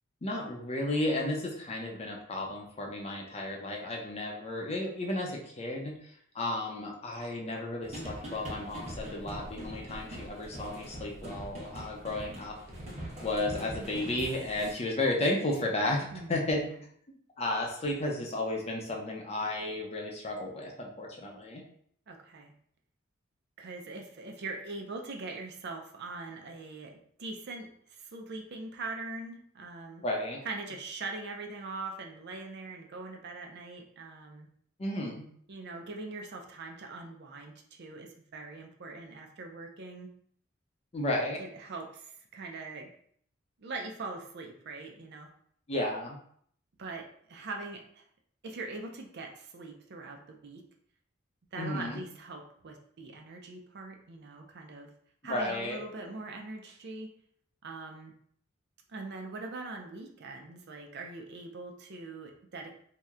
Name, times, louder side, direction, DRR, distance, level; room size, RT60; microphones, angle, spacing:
voice 1, 0.2-12.6 13.2-16.7 17.4-21.6 30.0-30.4 34.8-35.3 40.9-41.4 45.7-46.2 51.6-52.0 55.2-55.8, left 1 dB, 30° left, 0 dB, 0.6 m, -33 dB
sound 1, 7.8-14.7, right 1 dB, 35° right, 1.0 m, -42 dB
voice 2, 16.1-16.8 22.1-22.5 23.6-30.0 30.4-34.5 35.5-40.1 41.4-42.9 43.6-45.3 46.8-48.0 48.4-50.6 51.5-54.9 55.2-57.1 57.6-58.1 58.9-62.7, right 3 dB, 55° right, 3 dB, 0.5 m, -42 dB
2.8 x 2.1 x 3.5 m, 0.63 s
head